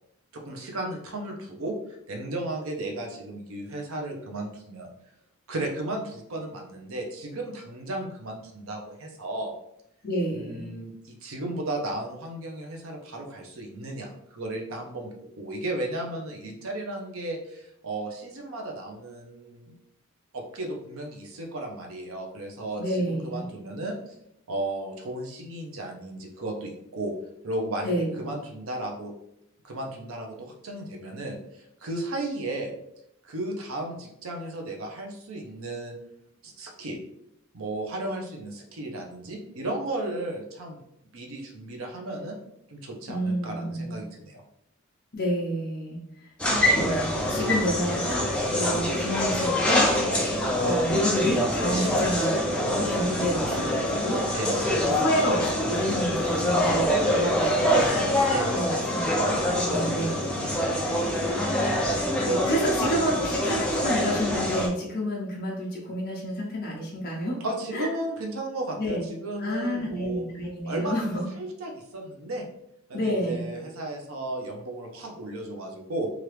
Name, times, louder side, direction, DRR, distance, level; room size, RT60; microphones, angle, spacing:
voice 1, 0.3-4.9 5.5-9.5 10.3-15.1 15.4-19.7 20.3-24.1 24.5-27.1 27.4-29.1 29.6-32.7 33.2-35.9 36.4-37.0 37.5-40.8 41.1-42.4 42.7-44.4 51.7-52.0 54.3-55.0 58.3-58.7 59.7-60.1 61.2-61.7 62.2-62.4 67.4-70.2 70.7-72.5 72.9-76.1, right 1 dB, 75° right, 2 dB, 0.6 m, -34 dB
voice 2, 10.0-10.7 22.8-23.4 27.8-28.3 43.1-44.0 45.1-46.0 46.7-49.9 50.6-52.3 52.7-54.2 54.8-58.1 58.5-60.7 62.2-67.4 67.7-67.9 68.8-69.0 69.4-71.2 72.9-73.4, equal, 45° left, -3 dB, 0.6 m, -29 dB
sound 1, 46.4-64.7, left 1 dB, 5° left, 0.4 m, -25 dB
3.0 x 2.4 x 3.3 m, 0.78 s
head